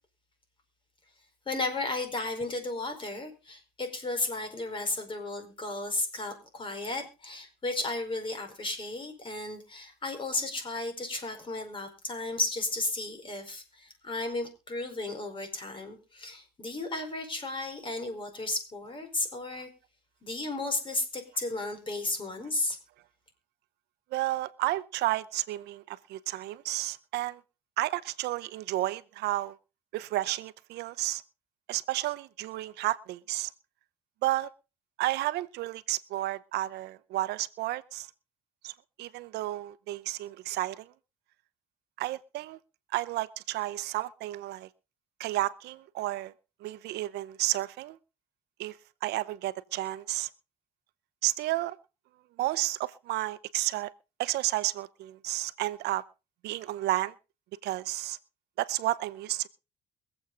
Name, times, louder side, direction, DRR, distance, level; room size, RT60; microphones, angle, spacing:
voice 1, 1.4-19.7 20.2-22.8, left 2 dB, 30° left, 4.7 m, -34 dB
voice 2, 24.1-27.4 27.8-29.6 29.9-31.2 31.7-33.5 34.2-34.5 35.0-38.1 38.6-40.9 42.0-42.6 42.9-44.7 45.2-46.3 46.6-48.0 48.6-50.3 51.2-51.8 52.4-53.9 54.2-56.0 56.4-57.1 57.6-58.2 58.6-59.5, right 16 dB, 80° right, 0.8 m, -32 dB
23.5 x 8.0 x 3.9 m
cardioid pair, 110°, 17 cm